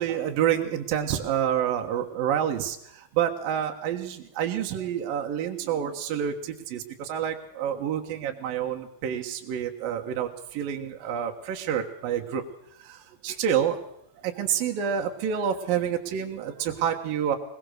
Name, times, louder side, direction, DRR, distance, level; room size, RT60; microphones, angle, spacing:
voice 1, 0.0-12.4 12.8-13.8 14.2-17.4, right 9 dB, 65° right, 3 dB, 2.8 m, -28 dB
21.0 x 20.5 x 6.5 m, 0.73 s
omnidirectional pair, 5.0 m